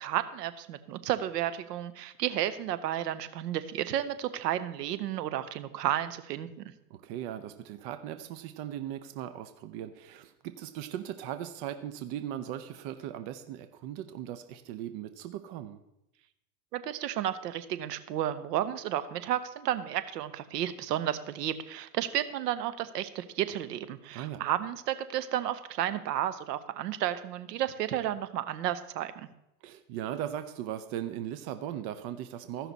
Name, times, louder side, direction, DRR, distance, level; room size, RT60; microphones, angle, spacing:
voice 1, 0.0-6.5 16.7-29.3, right 11 dB, 75° right, 12 dB, 0.9 m, -32 dB
voice 2, 6.9-15.8 24.1-24.4 29.6-32.7, right 11 dB, 50° right, 10 dB, 0.8 m, -38 dB
15.0 x 5.9 x 4.0 m, 0.85 s
hypercardioid pair, 100°, 48 cm